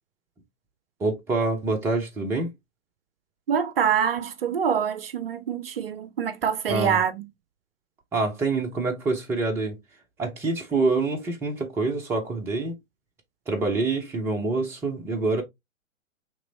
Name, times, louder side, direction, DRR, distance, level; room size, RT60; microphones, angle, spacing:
voice 1, 1.0-2.5 6.7-7.0 8.1-9.8 10.2-12.7 13.5-15.4, right 3 dB, 5° right, 0.6 m, -26 dB
voice 2, 3.5-7.3, right 8 dB, 45° right, 0.5 m, -25 dB
5.9 x 3.1 x 2.7 m
figure-of-eight pair, 115°, 39 cm